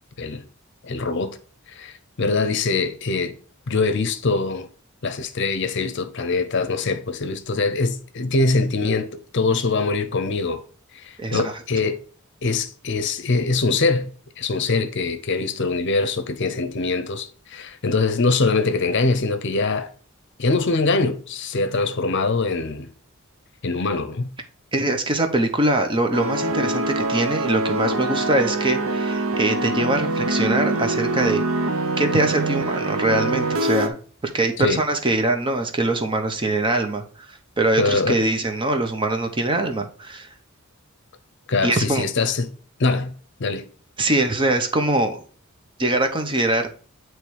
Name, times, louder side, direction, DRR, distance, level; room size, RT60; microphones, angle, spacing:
voice 1, 0.8-1.4 1.7-3.4 3.7-4.7 5.0-10.6 10.9-12.0 12.4-14.1 14.4-19.9 20.4-22.9 23.6-24.3 34.6-34.8 37.8-38.2 41.5-42.5 42.8-43.1 43.4-43.7, left 3 dB, 60° left, 0.7 m, -23 dB
voice 2, 11.2-11.5 24.7-31.4 32.0-33.9 34.3-40.3 41.6-42.1 44.0-45.2 45.8-46.7, right 2 dB, 25° right, 0.8 m, -22 dB
sound 1, 26.1-33.9, right 2 dB, 90° right, 0.8 m, -24 dB
8.7 x 3.1 x 4.7 m
head